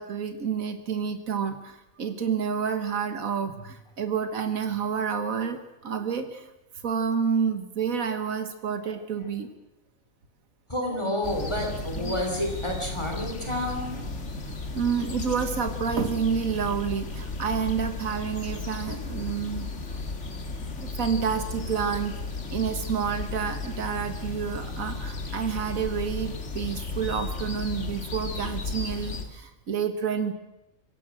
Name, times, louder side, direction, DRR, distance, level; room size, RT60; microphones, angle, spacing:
voice 1, 0.0-6.5 6.8-9.5 12.0-12.2 14.7-19.7 20.8-22.2 22.5-30.3, right 6 dB, 85° right, 8 dB, 1.8 m, -29 dB
voice 2, 10.7-14.0, left 1 dB, 20° left, 2 dB, 3.6 m, -30 dB
sound 1, 11.2-29.2, left 3 dB, 60° left, 2.1 m, -34 dB
25.5 x 16.5 x 6.3 m, 0.90 s
omnidirectional pair, 1.4 m